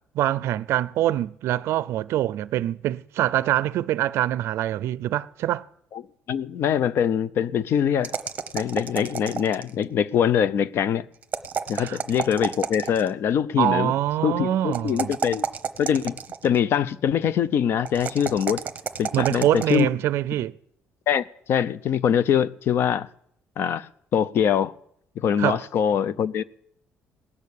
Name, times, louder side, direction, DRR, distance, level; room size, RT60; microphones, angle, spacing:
voice 1, 0.2-5.6 11.8-12.0 13.6-15.1 19.1-20.5 25.4-25.6, right 13 dB, 70° right, 0.4 m, -24 dB
voice 2, 6.3-8.1 8.5-11.1 11.7-13.9 14.2-15.4 15.8-18.6 19.0-19.9 21.1-23.1 23.6-24.7 25.2-26.4, left 8 dB, 60° left, 0.5 m, -23 dB
sound 1, 8.0-9.8 11.2-13.1 14.7-16.6 17.9-19.8, right 7 dB, 35° right, 0.9 m, -31 dB
18.5 x 6.5 x 8.4 m
cardioid pair, 130°, 5 cm